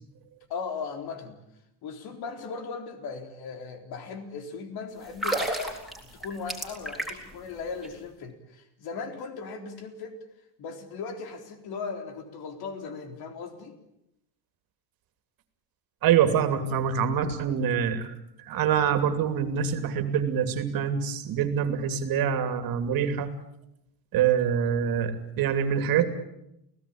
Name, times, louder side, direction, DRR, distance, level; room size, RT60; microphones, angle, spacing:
voice 1, 0.5-1.4 1.8-5.6 6.1-10.2 10.6-13.8, left 5 dB, 55° left, 6 dB, 4.1 m, -38 dB
sound 1, 5.1-7.4 7.7-7.9, right 1 dB, ahead, 4.1 m, -31 dB
voice 2, 16.0-18.1 18.5-23.3 24.1-26.1, right 8 dB, 55° right, 9 dB, 2.8 m, -25 dB
29.0 x 17.0 x 8.7 m, 0.82 s
cardioid pair, 150°, 43 cm